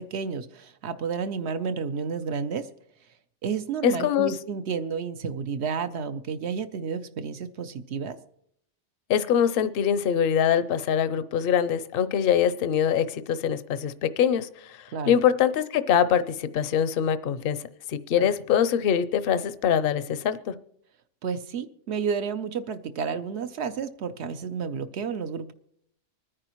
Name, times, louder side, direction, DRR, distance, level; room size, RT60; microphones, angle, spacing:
voice 1, 0.0-2.7 3.4-8.2 14.9-15.2 18.2-18.3 21.2-25.5, right 6 dB, 65° right, 10 dB, 0.9 m, -31 dB
voice 2, 3.8-4.3 9.1-20.5, left 8 dB, 60° left, 14 dB, 0.7 m, -24 dB
25.0 x 9.8 x 3.0 m, 0.74 s
omnidirectional pair, 1.2 m